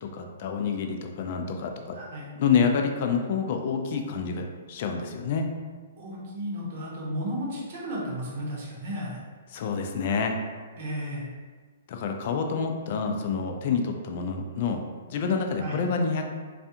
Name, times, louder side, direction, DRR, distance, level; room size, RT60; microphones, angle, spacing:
voice 1, 0.0-2.0 2.4-5.5 9.5-10.4 11.9-14.8 15.1-16.3, left 5 dB, 50° left, 4 dB, 0.3 m, -28 dB
voice 2, 1.9-2.3 6.0-9.2 10.8-11.3 15.6-15.8, equal, 55° right, -4 dB, 0.8 m, -34 dB
2.4 x 2.2 x 2.7 m, 1.5 s
hypercardioid pair, 135°, 0 cm